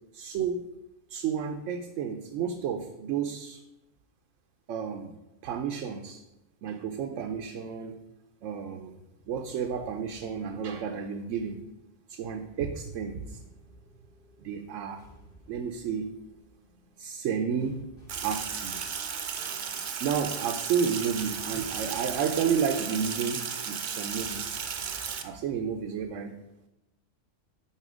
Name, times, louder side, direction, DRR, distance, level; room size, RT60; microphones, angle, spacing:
voice 1, 0.1-0.7 1.1-3.6 4.7-5.2 5.4-6.2 6.6-8.0 8.4-9.0 9.3-11.6 12.1-13.4 14.4-15.0 15.5-16.1 17.0-17.8 18.2-18.9 20.0-24.6 25.2-26.4, right 7 dB, 80° right, 5 dB, 1.0 m, -31 dB
sound 1, 9.1-25.7, right 1 dB, 45° left, 2.1 m, -56 dB
Sink (filling or washing), 18.1-25.2, right 7 dB, 50° right, 0.6 m, -34 dB
8.3 x 4.4 x 5.1 m, 0.98 s
omnidirectional pair, 1.3 m